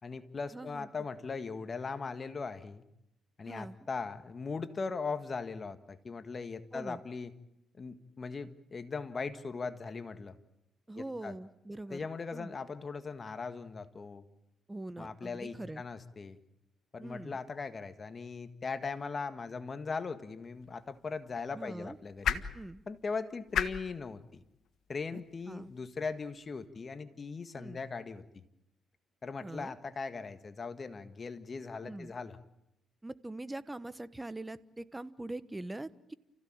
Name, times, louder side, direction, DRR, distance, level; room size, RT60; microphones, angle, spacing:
voice 1, 0.0-2.8 3.4-7.3 7.8-10.3 10.9-11.3 11.9-14.2 15.0-16.4 16.9-22.4 22.9-24.4 24.9-28.4 29.2-32.4, left 4 dB, 35° left, 10 dB, 1.7 m, -39 dB
voice 2, 0.5-0.9 3.4-3.9 6.7-7.0 10.9-12.0 12.3-12.5 14.7-15.8 17.0-17.4 21.5-22.0 22.5-22.8 25.1-25.2 25.5-25.7 27.5-27.8 29.4-29.7 31.8-32.1 33.0-36.1, right 2 dB, 15° right, 15 dB, 1.1 m, -43 dB
sound 1, 20.4-26.7, left 8 dB, 70° left, 1.4 m, -40 dB
29.5 x 16.0 x 8.8 m, 0.84 s
cardioid pair, 90°, 0 cm